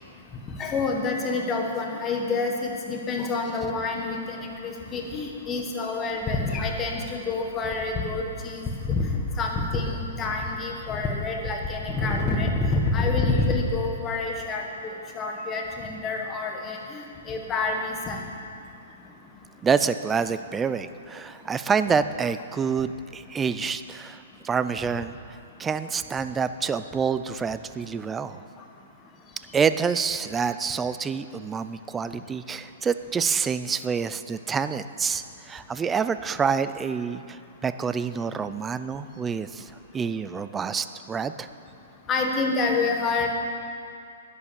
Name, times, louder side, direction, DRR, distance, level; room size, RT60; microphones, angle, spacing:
voice 1, 0.6-7.0 7.2-9.1 9.4-14.6 15.1-18.2 42.1-43.3, left 3 dB, 15° left, 1 dB, 1.3 m, -27 dB
voice 2, 19.6-25.2 25.6-28.4 29.5-41.5, right 6 dB, 10° right, 12 dB, 0.3 m, -27 dB
11.0 x 9.6 x 7.0 m, 2.5 s
hypercardioid pair, 165°, 0 cm